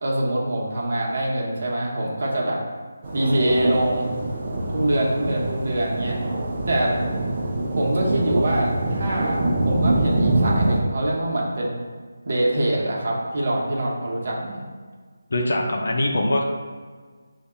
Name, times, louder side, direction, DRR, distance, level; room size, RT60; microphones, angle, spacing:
voice 1, 0.0-2.6 3.1-4.1 4.7-6.2 6.7-6.9 7.7-11.8 12.2-14.6, right 1 dB, 60° right, -4 dB, 0.9 m, -24 dB
sound 1, 3.0-10.8, right 1 dB, 40° right, 0.6 m, -24 dB
voice 2, 15.3-16.4, left 1 dB, 65° left, 0 dB, 0.5 m, -22 dB
5.4 x 2.8 x 2.2 m, 1.5 s
figure-of-eight pair, 160°, 0 cm